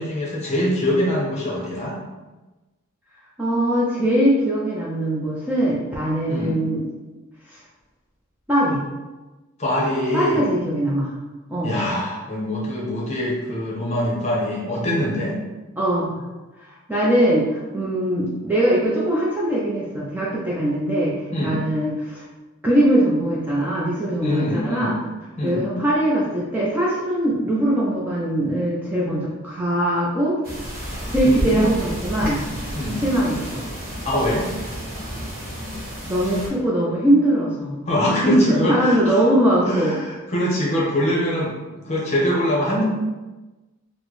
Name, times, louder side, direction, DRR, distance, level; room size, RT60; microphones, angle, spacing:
voice 1, 0.0-2.0 6.3-6.6 9.6-10.4 11.6-15.4 21.3-21.6 24.2-24.9 25.4-25.6 31.2-31.7 32.7-33.0 34.0-34.5 37.9-39.2 39.7-41.5 41.8-42.8, left 1 dB, 30° left, -3 dB, 0.8 m, -23 dB
voice 2, 3.4-6.9 7.5-7.6 8.5-8.8 10.1-11.1 11.5-11.7 15.8-16.2 16.6-21.1 21.4-22.2 22.6-25.0 25.4-30.4 31.1-32.4 33.0-33.6 36.1-37.7 38.2-39.9, right 1 dB, 10° right, -6 dB, 0.4 m, -21 dB
sound 1, 30.4-36.5, equal, 40° right, 1.2 m, -31 dB
4.2 x 2.1 x 3.1 m, 1.1 s
head